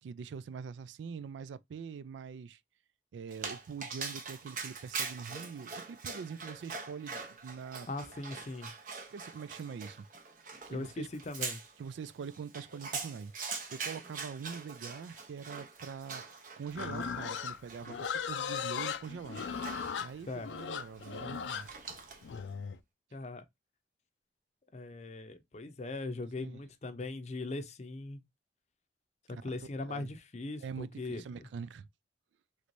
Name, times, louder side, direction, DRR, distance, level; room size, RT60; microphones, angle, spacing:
voice 1, 0.0-2.6 3.1-8.1 9.1-10.1 10.7-11.1 11.8-16.3 16.6-19.4 20.0-21.7 26.4-26.6 29.3-29.5 29.8-30.1 30.6-31.9, right 6 dB, 85° right, 0.3 m, -44 dB
Dog, 3.3-22.4, right 5 dB, 50° right, 0.8 m, -44 dB
voice 2, 7.9-8.7 10.7-11.6 20.3-20.5 23.1-23.4 24.7-28.2 29.3-31.5, left 2 dB, 40° left, 0.5 m, -40 dB
Livestock farm animals working animals, 16.7-22.8, left 7 dB, 85° left, 0.4 m, -38 dB
3.2 x 3.1 x 2.5 m
head